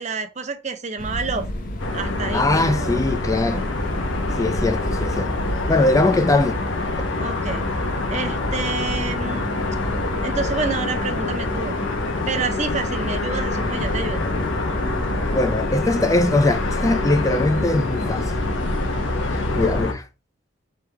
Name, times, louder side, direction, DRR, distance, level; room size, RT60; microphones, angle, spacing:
voice 1, 0.0-1.5 1.9-3.0 7.2-7.6 8.1-9.4 10.2-11.8 12.3-14.2, right 4 dB, 35° right, 0.5 m, -28 dB
sound 1, 1.0-19.8, equal, 45° left, 0.8 m, -31 dB
sound 2, 1.8-19.9, left 2 dB, 85° left, 1.0 m, -26 dB
voice 2, 2.3-3.7 4.4-5.3 5.7-6.5 15.3-18.3 19.5-20.1, left 2 dB, 15° left, 0.4 m, -21 dB
3.5 x 3.4 x 4.5 m
head